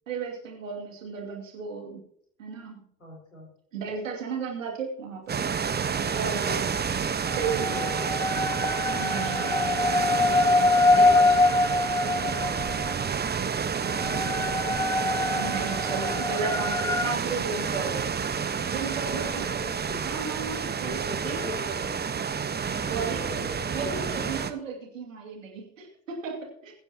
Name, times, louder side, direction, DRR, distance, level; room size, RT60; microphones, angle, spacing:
voice 1, 0.1-2.0 2.4-2.8 3.7-5.4 6.1-6.7 7.3-7.8 8.9-10.7 10.9-12.5 15.3-18.0 18.6-19.5 20.0-21.4 22.9-23.4 23.7-26.7, right 5 dB, 75° right, 1 dB, 2.7 m, -35 dB
voice 2, 3.0-3.5 5.8-6.2 7.5-8.3 8.9-9.7 11.0-11.2 14.0-14.6 17.2-17.8 18.8-20.1 20.8-22.1 22.7-24.0, left 1 dB, 85° left, -1 dB, 4.6 m, -42 dB
Wellen am Meer, 5.3-24.5, right 6 dB, 25° right, 1.2 m, -29 dB
sound 1, 7.3-12.9 13.8-17.2, left 3 dB, 10° left, 0.5 m, -24 dB
22.5 x 9.7 x 2.9 m, 0.65 s
figure-of-eight pair, 55°, 38 cm